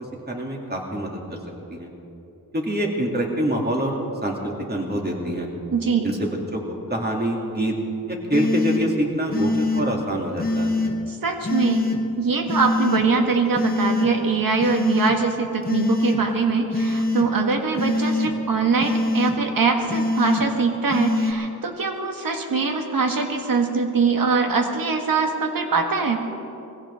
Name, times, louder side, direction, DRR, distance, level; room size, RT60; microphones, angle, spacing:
voice 1, 0.3-1.4 1.7-1.9 2.5-5.5 6.0-6.6 6.9-7.7 8.1-10.7, equal, 30° right, -1 dB, 2.8 m, -25 dB
voice 2, 5.7-6.1 11.1-11.9 12.2-26.2, right 4 dB, 70° right, 4 dB, 1.8 m, -22 dB
sound 1, 8.3-8.8 9.3-9.8 10.4-10.9 11.4-12.0 12.5-13.0 13.5-14.1 14.6-15.1 15.6-16.2 16.7-17.3 17.8-18.3 18.8-19.3 19.9-20.4 20.9-21.3, left 2 dB, 25° left, 1.8 m, -23 dB
21.5 x 16.0 x 3.7 m, 2.8 s
cardioid pair, 70°, 35 cm